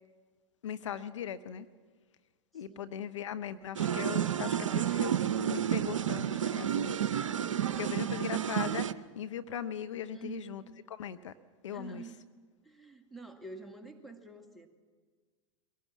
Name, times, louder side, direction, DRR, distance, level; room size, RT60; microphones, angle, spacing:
voice 1, 0.6-1.7 2.5-6.9 7.8-10.6 10.9-11.3 11.6-12.0, left 9 dB, 70° left, 11 dB, 0.8 m, -39 dB
voice 2, 2.5-3.0 7.9-8.5 10.1-10.6 11.7-12.2 12.6-14.7, right 3 dB, ahead, 3 dB, 2.2 m, -48 dB
sound 1, 3.8-8.9, right 10 dB, 75° right, 0.7 m, -31 dB
22.5 x 17.5 x 7.3 m, 1.5 s
figure-of-eight pair, 90°, 16 cm